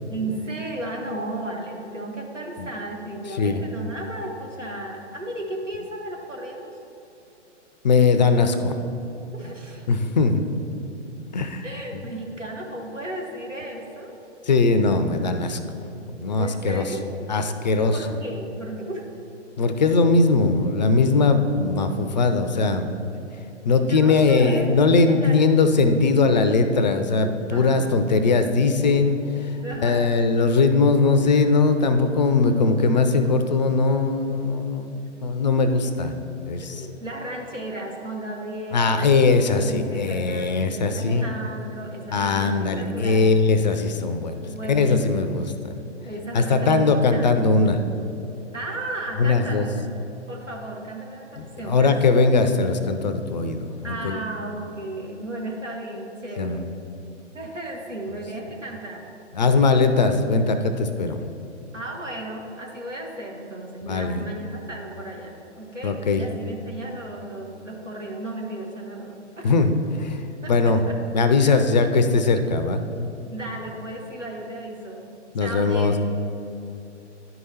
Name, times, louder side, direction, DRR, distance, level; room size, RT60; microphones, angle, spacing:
voice 1, 0.1-6.7 9.3-9.8 11.6-14.2 16.4-17.1 17.9-19.1 23.7-24.8 25.1-25.5 27.5-28.5 29.6-30.2 36.5-43.6 44.5-45.5 46.0-47.5 48.5-49.7 50.3-51.9 53.8-56.7 57.3-59.1 59.4-59.8 61.7-69.5 70.4-70.9 71.4-71.6 73.3-75.0 75.4-76.0, right 1 dB, 90° right, -1 dB, 1.3 m, -34 dB
voice 2, 7.8-8.8 9.9-10.5 11.3-11.6 11.9-12.0 14.4-15.6 16.1-16.9 17.3-18.0 19.6-23.2 23.7-36.2 36.5-36.8 38.7-41.2 42.1-45.8 46.3-47.8 49.2-49.7 51.4-54.2 56.4-56.7 59.3-61.2 63.9-64.3 65.8-66.3 69.4-70.2 70.5-70.8 71.1-73.2 75.3-75.9, left 4 dB, 40° left, 9 dB, 0.4 m, -20 dB
11.0 x 4.8 x 2.8 m, 2.8 s
figure-of-eight pair, 120°, 36 cm